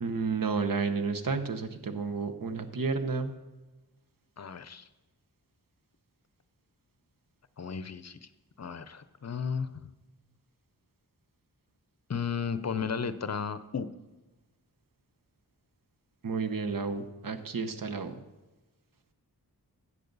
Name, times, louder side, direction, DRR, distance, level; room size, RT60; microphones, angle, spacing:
voice 1, 0.0-3.3 16.2-18.2, right 4 dB, 60° right, 7 dB, 1.0 m, -31 dB
voice 2, 4.4-4.9 7.6-8.2 8.6-9.7 12.1-13.9, left 6 dB, 45° left, 13 dB, 0.6 m, -34 dB
13.5 x 8.5 x 4.0 m, 1.1 s
wide cardioid pair, 80°, 38 cm